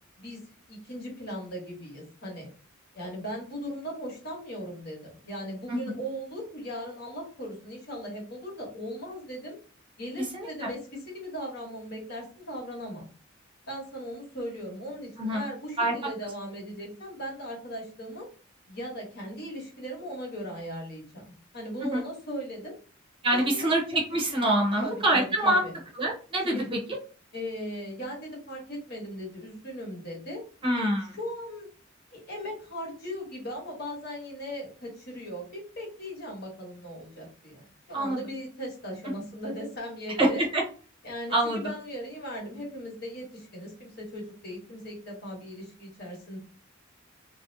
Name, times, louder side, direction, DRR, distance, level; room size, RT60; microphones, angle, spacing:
voice 1, 0.7-2.5 2.9-9.6 10.0-13.1 13.7-18.3 18.7-22.7 23.3-23.7 24.7-25.7 26.5-26.7 27.3-30.4 31.1-31.7 32.1-40.4 41.0-46.4, equal, 55° left, -3 dB, 1.1 m, -38 dB
voice 2, 10.3-10.7 15.2-15.4 15.8-15.9 21.9-22.0 23.2-25.6 26.0-26.6 30.6-31.2 37.9-38.2 40.2-40.6 41.3-41.6, right 1 dB, 25° right, -2 dB, 0.7 m, -25 dB
2.5 x 2.1 x 2.6 m, 0.39 s
head